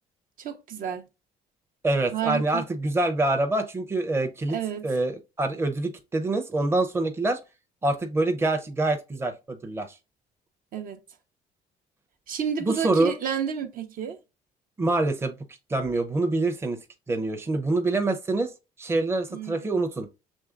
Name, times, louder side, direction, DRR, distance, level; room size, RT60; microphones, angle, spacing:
voice 1, 0.4-1.1 2.1-2.6 4.5-4.9 10.7-11.0 12.3-14.2 19.3-19.8, right 8 dB, 55° right, 0.7 m, -31 dB
voice 2, 1.8-4.6 4.8-7.4 7.8-9.9 12.6-13.1 14.8-15.4 15.7-16.8 17.1-18.5 18.8-20.1, right 2 dB, 15° right, 0.6 m, -25 dB
6.2 x 3.2 x 2.4 m
cardioid pair, 110°, 17 cm